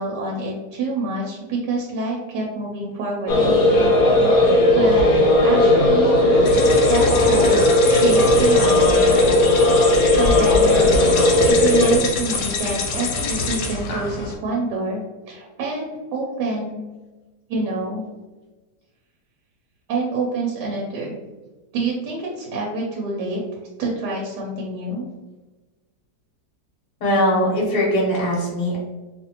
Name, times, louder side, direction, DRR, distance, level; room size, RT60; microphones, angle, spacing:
voice 1, 0.0-3.9 4.7-6.2 6.9-9.4 10.1-15.0 15.3-16.8 17.5-18.0 19.9-21.2 21.7-23.4 23.8-25.1, right 3 dB, 85° right, -3 dB, 1.2 m, -27 dB
sound 1, 3.3-12.0, left 1 dB, 70° left, 1.0 m, -16 dB
sound 2, 6.4-14.3, left 4 dB, 85° left, 1.2 m, -26 dB
voice 2, 27.0-28.8, equal, 40° left, -4 dB, 1.0 m, -21 dB
2.7 x 2.5 x 2.7 m, 1.2 s
omnidirectional pair, 1.8 m